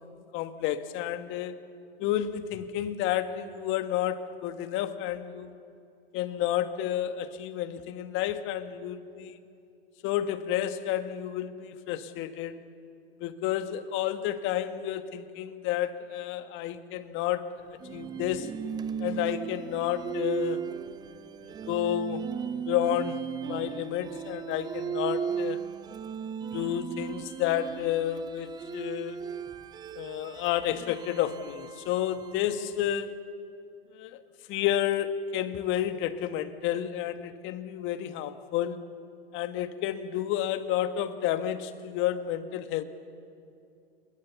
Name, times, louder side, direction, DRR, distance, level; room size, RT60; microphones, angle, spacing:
voice 1, 0.3-1.6 2.0-5.5 6.1-9.4 10.0-12.6 13.2-17.6 17.9-18.5 19.0-20.7 21.4-22.2 22.6-25.6 26.5-29.2 29.9-33.2 33.9-34.2 34.5-38.8 39.3-42.8, left 11 dB, 40° left, 10 dB, 1.5 m, -31 dB
sound 1, 17.8-32.9, right 7 dB, 15° right, 0.5 m, -36 dB
27.5 x 23.0 x 7.1 m, 2.5 s
hypercardioid pair, 115°, 31 cm